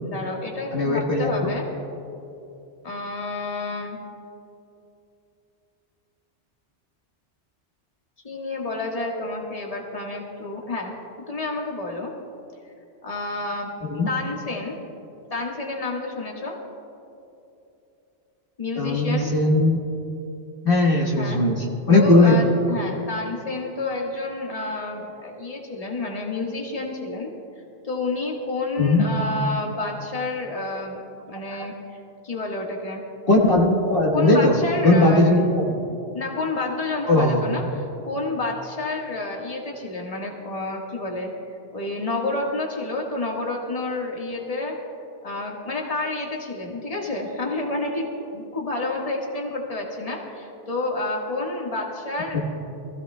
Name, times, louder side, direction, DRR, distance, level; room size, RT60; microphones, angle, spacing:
voice 1, 0.0-1.7 2.8-4.0 8.2-10.9 11.3-12.1 12.6-12.7 13.0-13.7 14.1-14.8 15.3-16.5 18.6-19.3 21.2-21.4 21.9-27.3 27.8-31.0 31.3-32.0 32.2-33.0 34.1-35.3 36.1-44.7 45.2-52.4, left 2 dB, 30° left, -1 dB, 1.6 m, -29 dB
voice 2, 0.7-1.5 13.9-14.1 18.8-19.8 20.6-22.4 28.8-29.0 31.6-31.7 33.3-35.7 37.1-37.6 52.3-52.4, left 2 dB, 55° left, -3 dB, 1.6 m, -19 dB
24.5 x 15.5 x 2.2 m, 2.8 s
omnidirectional pair, 1.2 m